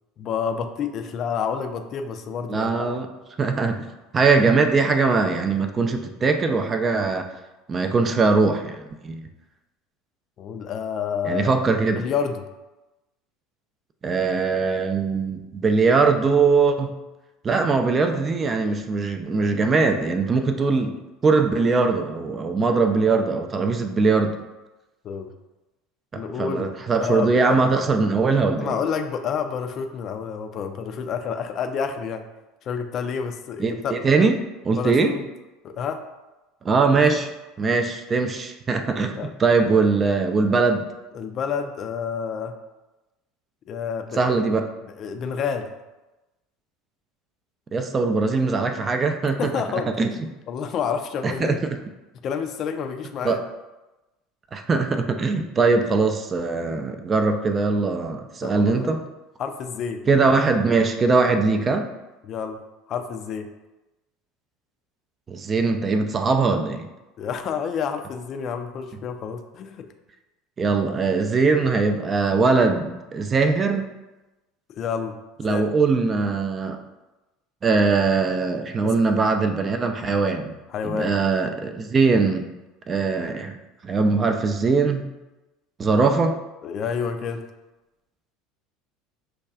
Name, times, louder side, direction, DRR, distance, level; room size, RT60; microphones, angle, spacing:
voice 1, 0.2-2.9 10.4-11.5 11.9-12.5 25.0-25.3 26.1-26.7 27.0-27.6 28.6-32.2 32.6-34.0 34.7-35.2 35.6-36.0 39.2-39.3 41.1-42.6 43.7-44.2 44.8-45.7 49.4-50.0 50.5-51.6 52.2-53.4 58.4-58.9 59.4-60.0 62.2-62.6 62.9-63.5 67.2-69.9 74.8-75.2 75.5-75.6 78.8-78.9 80.7-81.1 86.6-87.4, left 6 dB, 45° left, 7 dB, 0.4 m, -29 dB
voice 2, 2.5-3.1 3.4-3.9 4.1-7.3 7.7-9.2 11.2-12.0 14.0-16.9 17.4-20.9 21.2-24.4 26.1-28.8 33.6-34.4 34.6-35.2 36.6-37.3 37.6-40.8 44.1-44.7 47.7-49.6 50.0-50.3 51.2-51.6 53.2-53.4 54.5-59.0 60.1-61.9 65.3-66.9 70.6-73.9 75.4-76.8 77.6-80.6 80.8-82.5 82.9-83.6 83.8-85.0 85.8-86.4, right 4 dB, 30° right, 6 dB, 0.4 m, -21 dB
5.8 x 2.3 x 2.4 m, 1.0 s
figure-of-eight pair, 70°, 0 cm